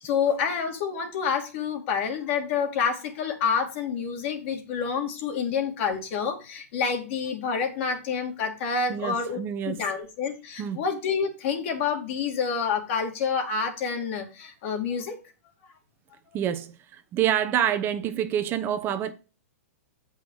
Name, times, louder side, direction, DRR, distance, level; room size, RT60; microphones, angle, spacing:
voice 1, 0.0-9.4 9.7-15.2, left 6 dB, 50° left, 2.5 m, -28 dB
voice 2, 8.9-9.8 10.6-10.8 16.3-19.1, right 10 dB, 25° right, 0.8 m, -27 dB
7.9 x 5.4 x 4.8 m
hypercardioid pair, 135°, 8 cm